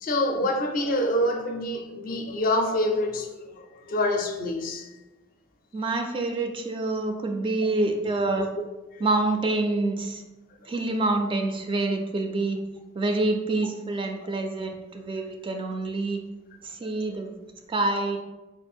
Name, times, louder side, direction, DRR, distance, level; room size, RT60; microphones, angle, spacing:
voice 1, 0.0-4.9 8.4-8.5 8.9-9.0, left 1 dB, 45° left, 0.4 m, -26 dB
voice 2, 5.7-8.5 9.0-10.2 10.7-12.6 12.9-16.2 16.6-17.3 17.7-18.2, right 2 dB, 25° right, 0.3 m, -27 dB
3.7 x 2.4 x 4.3 m
head